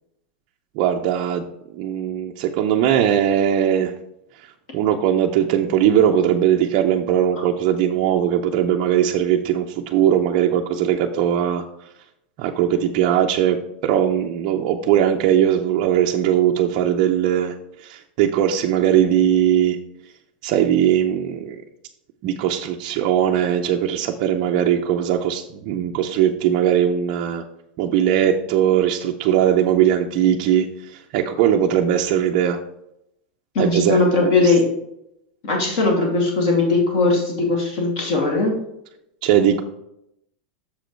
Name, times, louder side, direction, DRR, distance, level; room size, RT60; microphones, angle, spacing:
voice 1, 0.8-1.5 1.7-3.9 4.7-11.6 12.4-17.5 17.8-19.8 20.4-21.6 22.2-27.4 27.8-30.7 30.9-32.6 33.6-34.5 39.2-39.6, right 10 dB, 35° right, 1 dB, 0.5 m, -19 dB
voice 2, 33.5-34.7 35.4-38.6, left 3 dB, 45° left, 0 dB, 2.4 m, -19 dB
6.9 x 5.1 x 4.4 m, 0.80 s
supercardioid pair, 175°, 5 cm